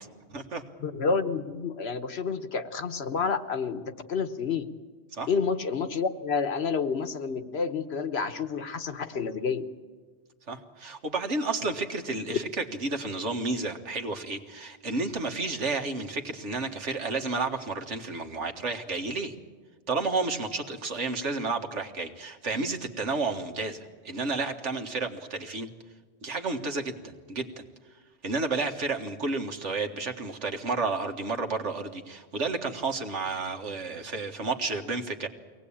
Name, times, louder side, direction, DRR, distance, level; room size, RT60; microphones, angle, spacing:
voice 1, 0.3-0.6 5.1-5.3 10.5-19.3 19.9-25.7 26.2-27.6 28.2-35.3, right 3 dB, 75° right, 5 dB, 1.9 m, -31 dB
voice 2, 0.8-4.7 5.3-9.7 12.3-12.4, left 5 dB, 60° left, 10 dB, 1.3 m, -29 dB
23.5 x 18.5 x 8.7 m, 1.5 s
omnidirectional pair, 1.2 m